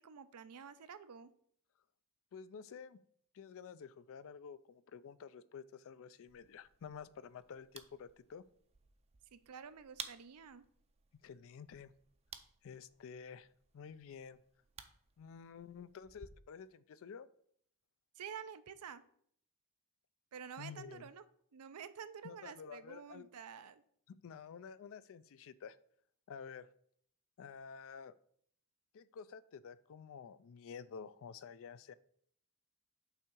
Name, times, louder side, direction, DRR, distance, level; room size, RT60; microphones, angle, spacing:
voice 1, 0.0-1.3 9.3-10.7 18.1-19.0 20.3-21.2 21.5-23.8, right 7 dB, 80° right, 13 dB, 0.5 m, -50 dB
voice 2, 2.3-3.0 3.3-8.4 11.2-11.9 12.6-13.5 13.7-14.4 15.2-17.3 20.6-21.1 22.2-23.3 24.1-25.8 26.3-26.7 27.4-28.2 28.9-31.9, left 6 dB, 65° left, 15 dB, 0.4 m, -50 dB
sound 1, 6.3-16.3, right 6 dB, 30° right, 0.5 m, -56 dB
5.7 x 3.6 x 5.9 m, 0.64 s
head